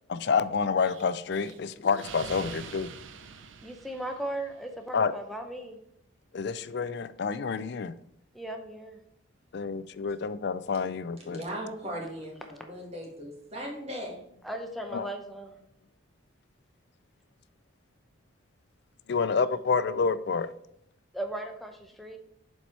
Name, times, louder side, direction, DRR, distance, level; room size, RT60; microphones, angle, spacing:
voice 1, 0.1-2.9 4.9-5.1 6.3-7.9 9.5-11.4 14.9-15.1 19.1-20.5, left 5 dB, 55° left, 14 dB, 0.4 m, -28 dB
Explosion, 0.8-4.6, right 6 dB, 65° right, 0.6 m, -45 dB
voice 2, 3.6-5.8 8.3-9.0 14.4-15.6 21.1-22.2, right 1 dB, ahead, 4 dB, 0.7 m, -37 dB
voice 3, 11.3-14.2, equal, 30° right, -1 dB, 1.9 m, -38 dB
7.1 x 4.4 x 4.6 m, 0.76 s
head